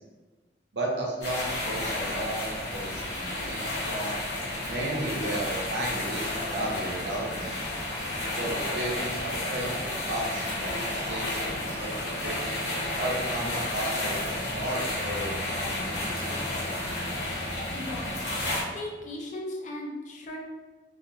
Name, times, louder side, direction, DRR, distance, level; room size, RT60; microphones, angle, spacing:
voice 1, 0.7-4.2 4.7-7.5 8.4-12.3 13.0-16.4, right 1 dB, 70° right, -2 dB, 0.6 m, -34 dB
sound 1, 1.2-18.6, left 1 dB, 75° left, 0.7 m, -32 dB
voice 2, 17.7-18.3 18.6-20.4, left 1 dB, 45° left, 0 dB, 0.4 m, -37 dB
2.8 x 2.1 x 2.4 m, 1.2 s
head